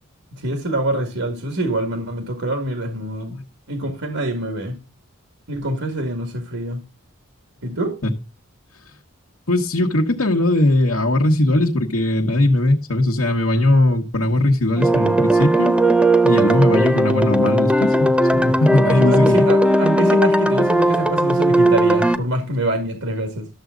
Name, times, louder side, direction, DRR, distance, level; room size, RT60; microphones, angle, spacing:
voice 1, 0.3-3.4 3.7-4.8 5.5-6.8 7.6-8.0 19.0-23.5, right 1 dB, 90° right, 2.0 m, -25 dB
voice 2, 9.5-15.8 16.2-19.5, left 1 dB, 75° left, 1.2 m, -19 dB
sound 1, 14.8-22.2, right 1 dB, 5° right, 0.8 m, -17 dB
12.5 x 7.2 x 3.8 m
head